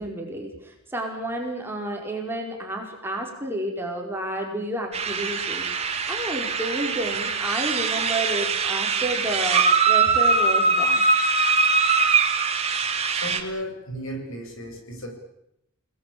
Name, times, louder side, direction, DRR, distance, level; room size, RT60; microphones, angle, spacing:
voice 1, 0.0-5.7 6.1-11.0, right 1 dB, 10° right, 1 dB, 4.8 m, -31 dB
sound 1, 4.9-13.4, right 4 dB, 30° right, 2.8 m, -22 dB
voice 2, 13.1-15.1, equal, 65° left, 4 dB, 7.3 m, -35 dB
29.5 x 19.0 x 8.7 m, 0.81 s
head